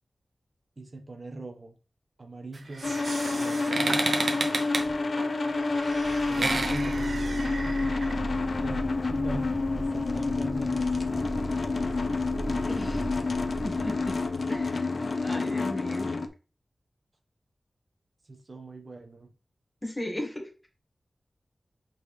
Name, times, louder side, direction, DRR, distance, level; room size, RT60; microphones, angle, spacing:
voice 1, 0.8-1.8 2.2-2.9 3.3-4.6 6.3-7.9 8.6-11.3 18.2-19.3, right 2 dB, 50° right, 4 dB, 1.3 m, -42 dB
sound 1, 2.5-8.1, right 3 dB, 70° right, 0.9 m, -32 dB
sound 2, 2.8-16.3, left 3 dB, 65° left, 0.7 m, -29 dB
sound 3, 5.7-15.0, right 1 dB, 20° right, 0.8 m, -37 dB
voice 2, 12.7-13.1 13.6-14.2 14.5-14.9 15.2-16.1 19.8-20.5, left 1 dB, 15° left, 2 dB, 1.9 m, -35 dB
8.0 x 4.5 x 3.4 m, 0.34 s
wide cardioid pair, 95°, 0 cm